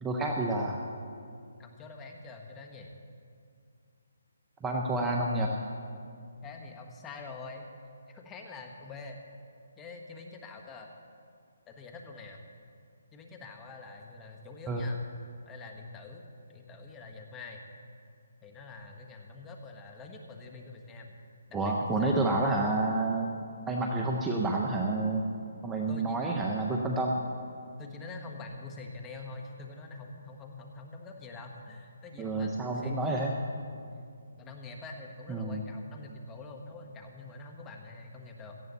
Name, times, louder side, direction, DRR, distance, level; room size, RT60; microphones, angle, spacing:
voice 1, 0.0-0.8 4.6-5.5 14.7-14.8 21.5-23.3 23.7-25.3 25.6-27.2 32.2-33.3 35.3-35.6, right 2 dB, 10° right, 0 dB, 0.8 m, -29 dB
voice 2, 1.6-2.9 6.4-7.7 8.1-9.2 9.8-10.9 11.7-12.4 13.1-15.0 15.5-16.2 16.5-17.6 18.4-21.2 21.5-22.4 25.9-26.3 27.8-33.8 34.4-38.6, left 3 dB, 15° left, 2 dB, 1.3 m, -45 dB
17.5 x 13.5 x 4.1 m, 2.3 s
hypercardioid pair, 160°, 0 cm